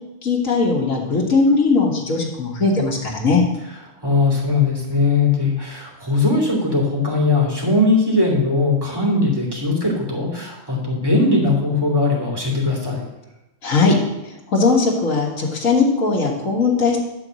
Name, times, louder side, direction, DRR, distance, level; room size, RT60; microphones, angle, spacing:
voice 1, 0.2-3.4 13.6-14.0 14.2-17.0, left 4 dB, 75° left, -3 dB, 2.1 m, -19 dB
voice 2, 4.0-13.1, left 3 dB, 15° right, -3 dB, 2.5 m, -19 dB
11.5 x 4.1 x 7.6 m, 0.95 s
omnidirectional pair, 1.4 m